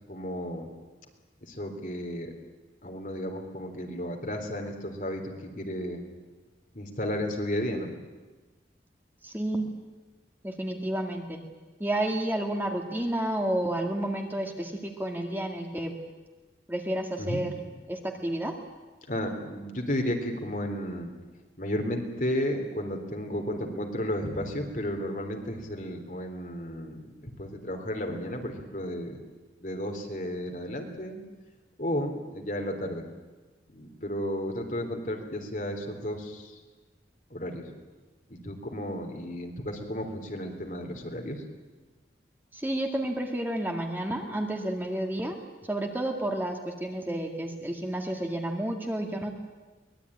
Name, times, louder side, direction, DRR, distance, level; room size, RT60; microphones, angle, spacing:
voice 1, 0.1-0.7 1.4-2.3 2.8-6.1 6.7-7.9 17.2-17.4 19.1-21.1 21.6-29.2 29.6-31.2 31.8-33.0 33.7-36.6 37.3-37.7 38.3-41.4, equal, 45° left, 3 dB, 3.6 m, -33 dB
voice 2, 9.2-9.6 10.4-11.4 11.8-15.9 16.7-17.5 17.9-18.5 42.5-45.4 45.6-49.3, right 1 dB, 10° right, 3 dB, 2.1 m, -30 dB
23.5 x 20.0 x 10.0 m, 1.3 s
head